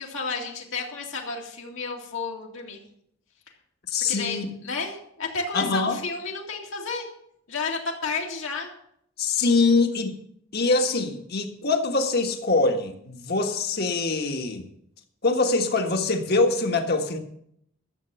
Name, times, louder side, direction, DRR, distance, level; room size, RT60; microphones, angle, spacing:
voice 1, 0.0-2.8 4.1-4.4 4.6-7.1 7.5-8.7, left 4 dB, 75° left, -1 dB, 2.3 m, -31 dB
voice 2, 3.9-4.5 5.5-6.0 9.2-10.2 10.5-14.7 15.2-17.2, left 3 dB, 50° left, 5 dB, 1.5 m, -23 dB
13.5 x 7.5 x 7.0 m, 0.71 s
head